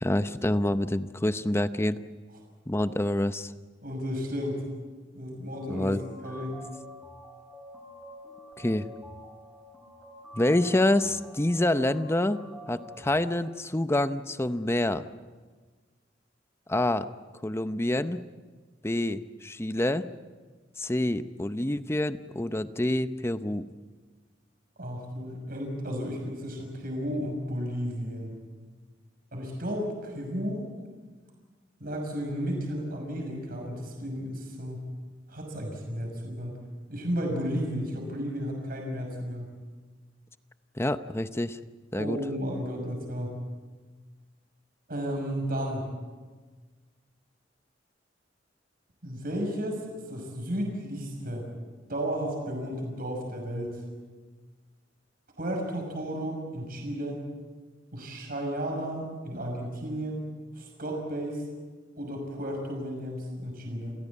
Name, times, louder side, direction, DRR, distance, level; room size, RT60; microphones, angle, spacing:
voice 1, 0.0-2.0 2.7-3.5 5.7-6.0 8.6-8.9 10.3-12.4 12.7-15.1 16.7-17.1 17.4-18.2 18.8-20.1 20.8-23.7 40.8-41.6 41.9-42.2, left 1 dB, 15° left, 12 dB, 0.7 m, -27 dB
voice 2, 3.8-4.6 5.1-5.9 6.2-6.6 24.8-28.3 29.3-30.7 31.8-34.9 35.3-36.5 36.9-39.5 41.9-43.3 44.9-45.9 49.0-49.8 50.1-51.5 51.9-53.7 55.4-57.2 57.9-60.2 60.5-61.4 62.0-63.9, equal, 50° right, 2 dB, 6.0 m, -33 dB
sound 1, 5.5-13.5, equal, 5° right, 3.9 m, -48 dB
29.0 x 16.5 x 8.5 m, 1.4 s
head